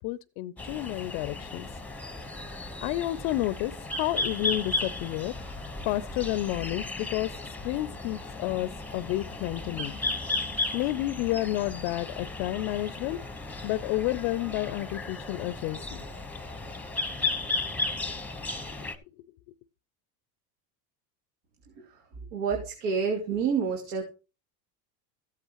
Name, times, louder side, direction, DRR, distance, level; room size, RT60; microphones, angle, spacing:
voice 1, 0.0-1.7 2.8-5.4 5.8-7.3 7.6-9.9 10.7-13.2 13.6-16.0, left 16 dB, 70° left, 0.6 m, -30 dB
sound 1, 0.6-19.0, left 2 dB, 5° left, 1.0 m, -35 dB
voice 2, 22.3-24.0, right 6 dB, 70° right, 2.7 m, -28 dB
14.5 x 8.3 x 3.0 m
supercardioid pair, 115°, 48 cm